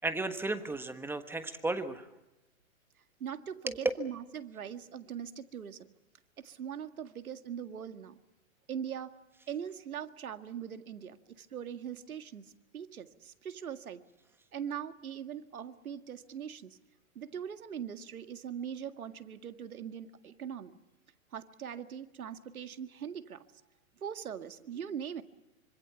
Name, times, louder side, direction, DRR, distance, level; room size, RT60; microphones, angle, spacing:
voice 1, 0.0-2.1 3.7-3.8, right 2 dB, 5° right, 9 dB, 1.4 m, -34 dB
voice 2, 3.2-5.9 6.4-8.2 8.7-9.1 9.5-12.5 12.7-14.0 14.5-16.8 17.2-20.7 21.3-23.4 24.0-25.2, right 8 dB, 85° right, 9 dB, 2.0 m, -41 dB
26.0 x 25.5 x 7.0 m, 0.95 s
hypercardioid pair, 135°, 42 cm